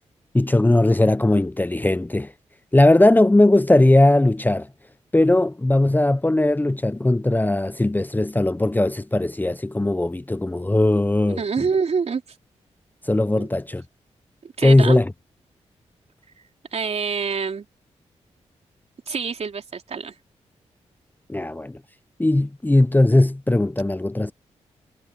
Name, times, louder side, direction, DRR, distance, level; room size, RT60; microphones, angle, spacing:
voice 1, 0.3-2.3 2.7-4.7 5.1-11.4 13.0-13.8 14.6-15.1 21.3-21.8 22.2-24.3, left 1 dB, 15° left, 0.8 m, -18 dB
voice 2, 11.3-12.2 13.4-13.5 14.4-15.0 16.7-17.7 19.1-20.1, right 5 dB, 60° right, 3.5 m, -26 dB
cardioid pair, 55°, 12 cm